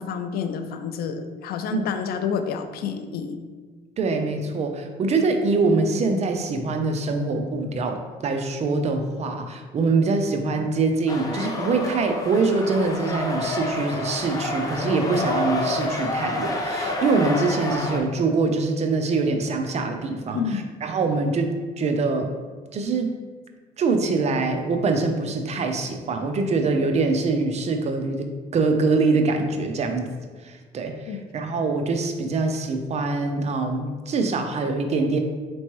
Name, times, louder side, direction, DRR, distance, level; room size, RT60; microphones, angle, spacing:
voice 1, 0.0-3.4 20.3-20.6 31.1-31.2, left 7 dB, 65° left, 8 dB, 0.4 m, -29 dB
voice 2, 4.0-22.3 22.7-23.2 23.8-28.3 28.5-30.1 30.4-35.2, right 3 dB, 40° right, 5 dB, 0.5 m, -24 dB
sound 1, 11.1-18.0, left 2 dB, 20° left, 0.6 m, -28 dB
4.3 x 3.0 x 3.0 m, 1.4 s
cardioid pair, 110°, 17 cm